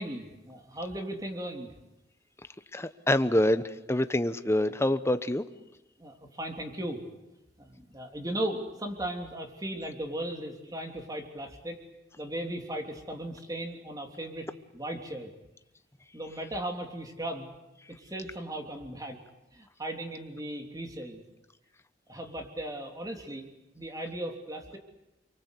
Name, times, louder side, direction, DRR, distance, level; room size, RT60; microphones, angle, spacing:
voice 1, 0.0-1.7 6.0-7.0 7.6-11.8 12.2-14.5 14.7-15.3 16.1-17.5 18.0-19.2 19.5-21.2 22.1-23.5 23.7-24.8, right 1 dB, 20° right, 3 dB, 3.2 m, -37 dB
voice 2, 2.7-5.5, left 1 dB, 15° left, 11 dB, 1.0 m, -26 dB
29.0 x 23.5 x 8.3 m, 0.94 s
head